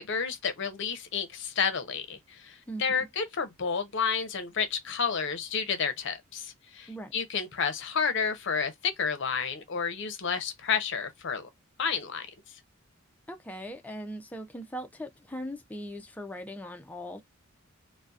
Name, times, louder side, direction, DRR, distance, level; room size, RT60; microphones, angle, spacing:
voice 1, 0.0-11.5 11.8-12.3, left 6 dB, 60° left, 0.6 m, -30 dB
voice 2, 2.7-3.1 6.9-7.1 13.3-17.2, equal, 5° left, 0.3 m, -40 dB
2.6 x 2.1 x 2.3 m
head